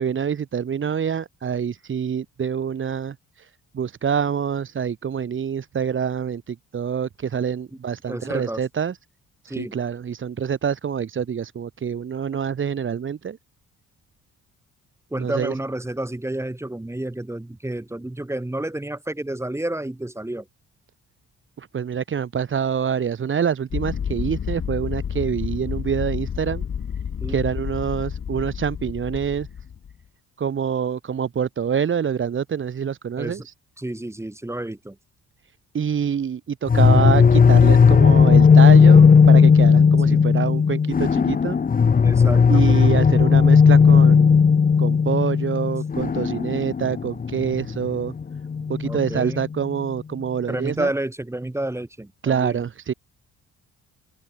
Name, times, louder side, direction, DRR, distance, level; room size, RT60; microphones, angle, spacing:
voice 1, 0.0-9.0 9.4-13.4 15.2-15.6 21.6-26.6 27.3-29.5 30.4-33.5 35.7-41.6 42.5-44.4 44.8-48.1 48.7-50.9 52.2-52.9, right 7 dB, 40° right, 1.3 m, -26 dB
voice 2, 8.1-8.6 9.5-9.7 15.1-20.5 27.2-27.4 33.2-33.5 33.8-35.0 40.1-40.2 42.0-42.7 48.9-49.4 50.5-52.6, right 1 dB, 10° right, 1.8 m, -30 dB
sound 1, 23.7-29.9, left 7 dB, 45° left, 2.5 m, -30 dB
sound 2, 36.7-49.5, left 6 dB, 30° left, 1.0 m, -15 dB
open air
cardioid pair, 90°, 30 cm